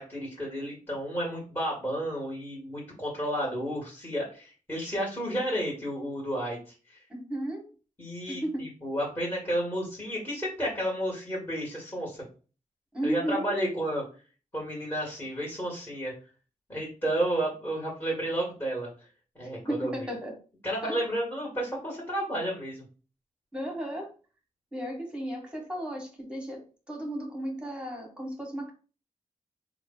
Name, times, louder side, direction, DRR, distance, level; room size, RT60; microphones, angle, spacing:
voice 1, 0.0-7.0 8.0-12.2 13.0-14.0 14.5-16.1 16.7-18.9 19.4-20.1 20.6-22.8, right 1 dB, 20° left, -4 dB, 1.8 m, -32 dB
voice 2, 7.1-7.7 8.3-8.7 12.9-13.5 19.4-20.3 20.8-21.0 23.5-24.1 24.7-26.6 26.9-28.7, right 1 dB, 5° right, 1 dB, 1.6 m, -34 dB
3.2 x 2.4 x 3.9 m, 0.36 s
cardioid pair, 65°, 14 cm